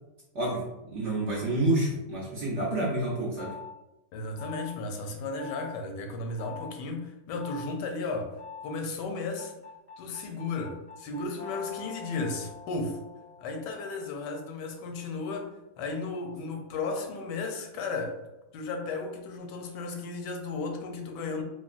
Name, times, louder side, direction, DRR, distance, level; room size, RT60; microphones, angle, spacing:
voice 1, 0.9-3.6, right 1 dB, 60° right, -5 dB, 0.7 m, -28 dB
sound 1, 3.4-3.7 4.4-4.7 5.4-5.7 6.4-6.7 7.4-7.7 8.4-8.7 9.4-14.5, left 6 dB, 45° left, 0.4 m, -45 dB
voice 2, 4.1-8.4 8.6-9.5 10.0-13.0 13.4-15.5 15.8-18.3 18.5-21.4, left 3 dB, 85° left, 3 dB, 1.2 m, -34 dB
3.6 x 2.1 x 2.4 m, 0.96 s
omnidirectional pair, 1.8 m